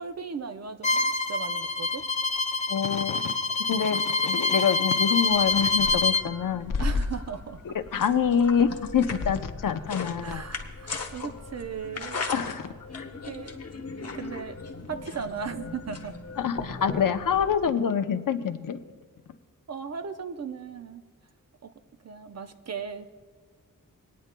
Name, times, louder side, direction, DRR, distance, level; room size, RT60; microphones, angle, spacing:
voice 1, 0.0-2.0 6.8-7.6 10.2-12.2 13.2-13.6 14.1-14.6 14.9-16.2 19.7-21.0 21.6-21.7 22.0-23.1, right 6 dB, 50° right, 8 dB, 0.6 m, -37 dB
Bowed string instrument, 0.8-6.2, left 3 dB, 20° left, 0.4 m, -26 dB
voice 2, 2.7-3.2 3.7-6.7 7.7-10.4 12.3-13.1 16.4-18.8, left 7 dB, 70° left, 9 dB, 0.6 m, -26 dB
sound 1, 5.3-17.7, left 3 dB, 45° left, 1.1 m, -36 dB
27.0 x 9.3 x 2.2 m, 1.5 s
wide cardioid pair, 125°, 34 cm